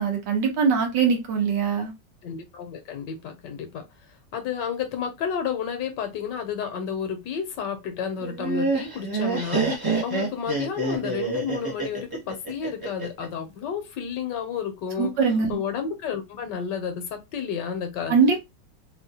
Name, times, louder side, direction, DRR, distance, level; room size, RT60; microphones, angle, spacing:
voice 1, 0.0-1.9 15.0-15.6 18.1-18.4, right 5 dB, 70° right, 1.6 m, -22 dB
voice 2, 2.2-3.8 4.3-15.1 15.5-18.2, left 7 dB, 70° left, 1.3 m, -31 dB
Laughter, 8.2-13.3, right 3 dB, 25° right, 0.5 m, -27 dB
3.7 x 2.2 x 2.8 m
omnidirectional pair, 2.0 m